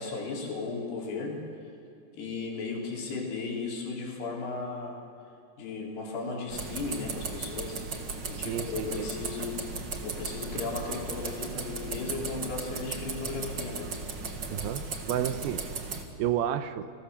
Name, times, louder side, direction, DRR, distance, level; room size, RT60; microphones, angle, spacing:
voice 1, 0.0-1.4 2.1-5.0 5.6-7.8 8.3-9.7 10.0-13.9, left 4 dB, 80° left, -1 dB, 5.9 m, -35 dB
sound 1, 6.5-16.0, right 4 dB, 45° right, 1.5 m, -36 dB
voice 2, 8.3-9.1 9.4-9.5 14.5-15.6 16.2-16.9, right 10 dB, 80° right, 11 dB, 2.5 m, -31 dB
29.0 x 20.5 x 7.1 m, 2.6 s
omnidirectional pair, 4.6 m